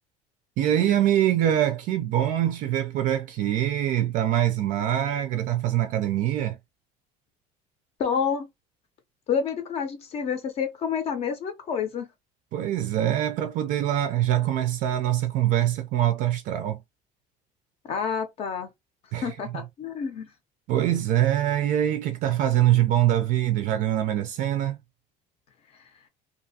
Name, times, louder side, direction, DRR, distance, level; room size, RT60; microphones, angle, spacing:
voice 1, 0.6-6.6 12.5-16.8 19.1-19.4 20.7-24.8, right 12 dB, 55° right, 0.4 m, -24 dB
voice 2, 8.0-8.5 9.3-12.1 17.9-18.7 19.2-20.3, left 6 dB, 40° left, 0.5 m, -28 dB
2.6 x 2.4 x 2.7 m
cardioid pair, 180°, 16 cm